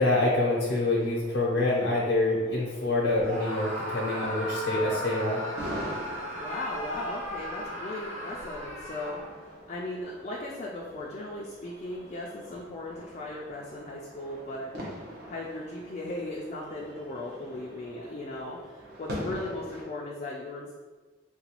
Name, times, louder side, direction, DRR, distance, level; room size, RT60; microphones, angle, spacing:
voice 1, 0.0-5.4, left 2 dB, 80° left, -5 dB, 0.6 m, -26 dB
sound 1, 0.7-19.8, equal, 55° right, 0.8 m, -44 dB
Screaming, 3.2-9.5, equal, 35° right, 1.3 m, -36 dB
voice 2, 6.3-14.7 15.3-20.7, left 2 dB, 40° left, -3 dB, 0.3 m, -37 dB
3.8 x 2.2 x 2.9 m, 1.3 s
head